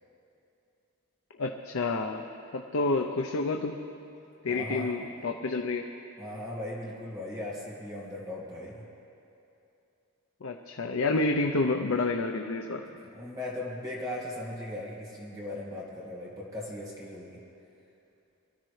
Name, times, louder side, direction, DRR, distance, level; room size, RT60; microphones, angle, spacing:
voice 1, 1.4-2.2 2.5-3.8 4.4-5.8 10.4-12.8, left 3 dB, 70° left, 3 dB, 0.6 m, -29 dB
voice 2, 4.5-4.9 6.2-8.8 13.1-17.4, left 1 dB, 15° right, -5 dB, 1.9 m, -38 dB
23.5 x 14.0 x 3.3 m, 2.7 s
head